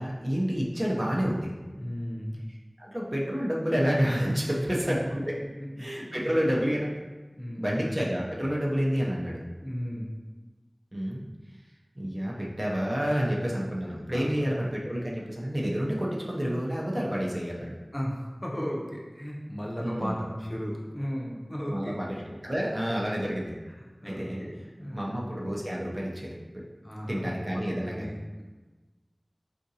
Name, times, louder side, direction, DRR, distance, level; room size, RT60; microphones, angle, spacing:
voice 1, 0.0-1.5 2.8-5.4 5.8-7.0 7.6-9.4 10.9-11.2 12.0-17.8 19.8-20.3 21.7-23.5 24.0-24.4 24.9-26.6 27.1-28.1, equal, 35° right, -4 dB, 0.5 m, -29 dB
voice 2, 1.7-2.4 4.9-5.0 5.8-6.4 7.4-7.7 9.6-10.1 14.1-14.3 17.9-22.0 22.9-23.4 23.8-25.2 26.8-28.4, equal, 20° left, -3 dB, 0.6 m, -36 dB
3.7 x 2.5 x 2.7 m, 1.2 s
wide cardioid pair, 55°, 0 cm